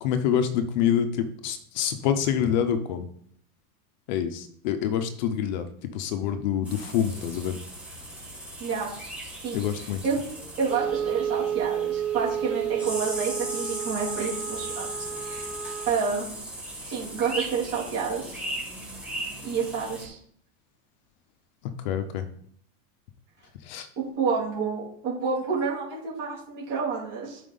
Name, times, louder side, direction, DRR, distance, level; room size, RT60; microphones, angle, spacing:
voice 1, 0.0-3.1 4.1-5.6 5.9-7.5 9.5-10.0 21.8-22.2 23.7-23.9, left 9 dB, 35° left, 9 dB, 0.4 m, -26 dB
sound 1, 6.7-20.1, right 1 dB, 5° right, 1.9 m, -38 dB
voice 2, 8.6-8.9 9.4-10.2 10.6-15.5 15.9-16.3 16.8-18.4 19.4-20.2 24.0-27.4, right 5 dB, 50° right, -6 dB, 3.2 m, -29 dB
Wind instrument woodwind instrument, 10.7-16.0, right 9 dB, 30° right, 0.7 m, -31 dB
11.0 x 5.0 x 3.8 m, 0.64 s
supercardioid pair, 180°, 44 cm